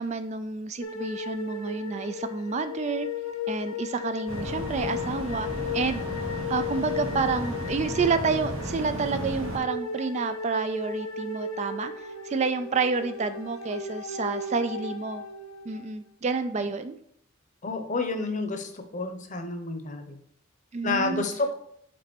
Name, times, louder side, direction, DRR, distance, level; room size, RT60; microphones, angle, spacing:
voice 1, 0.0-3.1 3.5-15.2 15.7-17.0 20.7-21.3, right 4 dB, 35° right, 10 dB, 0.3 m, -29 dB
sound 1, 0.8-15.9, left 4 dB, 85° left, 0.7 m, -36 dB
sound 2, 4.3-9.6, right 1 dB, 75° right, 1.4 m, -34 dB
voice 2, 17.6-20.0 20.8-21.6, left 3 dB, 35° left, 6 dB, 0.8 m, -29 dB
5.2 x 4.1 x 5.9 m, 0.70 s
head